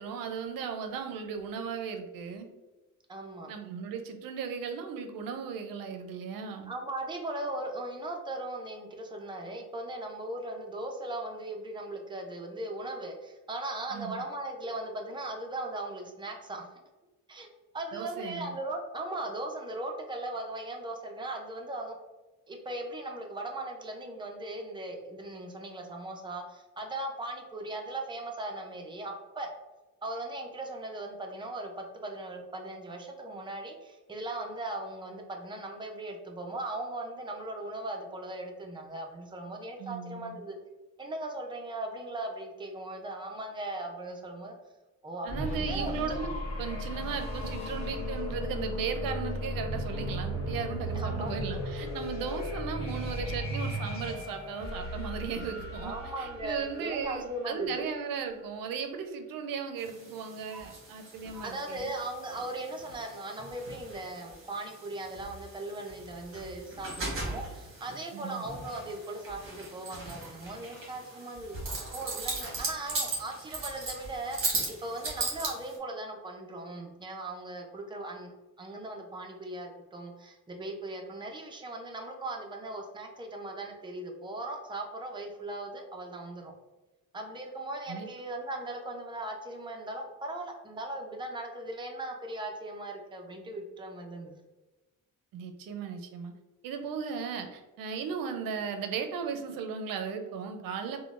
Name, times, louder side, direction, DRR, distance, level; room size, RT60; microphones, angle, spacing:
voice 1, 0.0-2.5 3.5-6.7 13.9-14.2 17.9-18.5 39.8-40.4 45.2-61.9 68.1-68.4 87.9-88.1 95.3-96.3 96.6-101.0, right 6 dB, 80° right, 6 dB, 0.5 m, -36 dB
voice 2, 3.1-3.5 6.7-16.6 17.3-17.5 17.7-22.0 22.5-29.5 30.0-40.6 41.0-44.5 45.0-45.9 50.7-51.3 55.8-57.8 61.4-71.6 71.9-78.3 78.6-86.5 87.1-94.3, right 2 dB, 15° right, 2 dB, 0.4 m, -38 dB
sound 1, 45.3-58.0, equal, 50° left, 1.0 m, -35 dB
sound 2, 59.8-75.8, right 3 dB, 40° right, 1.1 m, -38 dB
3.7 x 2.1 x 2.4 m, 1.1 s
cardioid pair, 125°, 33 cm